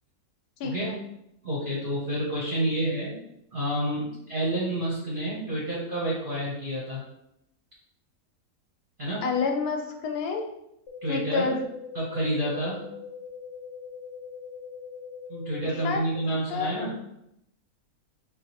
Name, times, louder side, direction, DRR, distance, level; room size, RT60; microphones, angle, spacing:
voice 1, 0.6-0.9 9.2-10.4 11.1-11.6 15.7-16.9, left 5 dB, 90° left, 3 dB, 1.1 m, -29 dB
voice 2, 1.4-3.2 3.5-7.0 9.0-9.2 11.0-11.5 11.9-12.9 15.3-16.9, right 1 dB, 50° right, -6 dB, 0.7 m, -29 dB
sound 1, 10.9-15.9, left 6 dB, 60° left, 0.8 m, -42 dB
3.7 x 2.2 x 2.8 m, 0.80 s
omnidirectional pair, 1.5 m